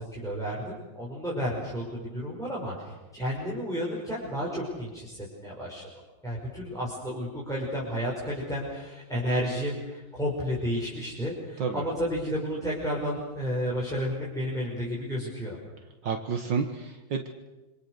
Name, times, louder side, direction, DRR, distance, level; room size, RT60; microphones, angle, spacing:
voice 1, 0.0-5.8 6.2-15.6, equal, ahead, -5 dB, 5.7 m, -32 dB
voice 2, 16.0-17.3, right 5 dB, 65° right, 5 dB, 2.0 m, -30 dB
27.0 x 26.0 x 6.7 m, 1.1 s
omnidirectional pair, 2.2 m